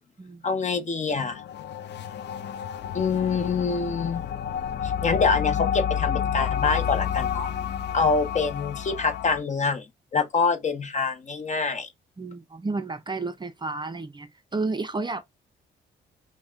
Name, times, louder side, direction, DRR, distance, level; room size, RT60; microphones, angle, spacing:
voice 1, 0.4-1.4 2.9-4.3 4.8-7.5 7.9-9.9 10.1-11.9, left 4 dB, 35° left, 0.9 m, -25 dB
sound 1, 1.1-9.4, left 8 dB, 60° left, 0.5 m, -30 dB
voice 2, 12.2-15.2, right 3 dB, 20° right, 0.5 m, -31 dB
5.4 x 2.2 x 2.5 m
cardioid pair, 90°, 20 cm